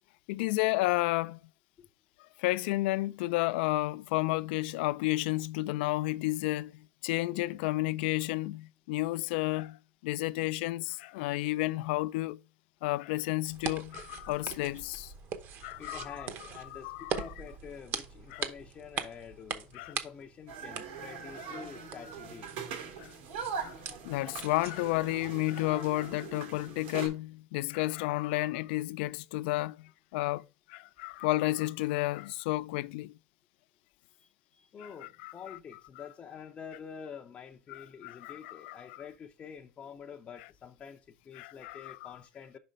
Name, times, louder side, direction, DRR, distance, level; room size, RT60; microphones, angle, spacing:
voice 1, 0.3-1.4 2.4-9.8 10.0-12.4 12.8-15.1 15.6-16.2 16.7-17.2 18.3-18.4 19.7-19.9 23.0-23.1 23.6-23.7 24.0-30.4 30.7-33.1 35.2-35.6 37.7-38.8 41.4-42.0, left 19 dB, 70° left, 0.4 m, -31 dB
sound 1, 13.5-25.0, right 7 dB, 35° right, 0.9 m, -42 dB
voice 2, 15.8-22.5 34.2-42.6, left 7 dB, 20° left, 0.6 m, -47 dB
sound 2, 20.5-27.1, right 6 dB, 80° right, 2.7 m, -41 dB
5.4 x 5.1 x 5.2 m
supercardioid pair, 150°, 6 cm